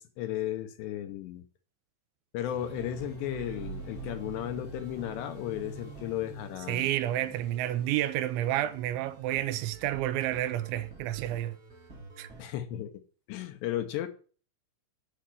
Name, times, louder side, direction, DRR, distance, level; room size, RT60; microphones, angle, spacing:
voice 1, 0.0-1.4 2.3-6.9 12.4-13.0 13.3-14.1, left 12 dB, 75° left, 2.8 m, -35 dB
sound 1, 2.4-12.5, right 3 dB, 45° right, 1.1 m, -51 dB
sound 2, 2.5-9.4, right 2 dB, 40° left, 1.0 m, -48 dB
sound 3, 3.2-6.6, right 7 dB, 65° right, 2.7 m, -46 dB
voice 2, 6.7-11.6 12.2-12.3, right 13 dB, 85° right, 2.9 m, -30 dB
8.6 x 6.4 x 7.6 m
omnidirectional pair, 5.5 m